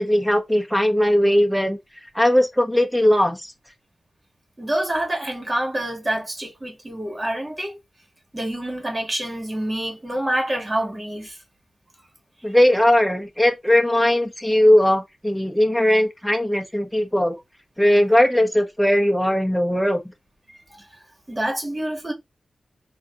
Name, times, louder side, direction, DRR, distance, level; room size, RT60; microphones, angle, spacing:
voice 1, 0.0-1.8 2.1-3.5 12.4-17.4 17.8-20.0, left 1 dB, ahead, 1.3 m, -19 dB
voice 2, 4.6-7.8 8.3-11.4 20.8-20.9 21.3-22.1, right 1 dB, 30° right, 2.5 m, -27 dB
4.1 x 3.0 x 4.2 m
cardioid pair, 50°, 0 cm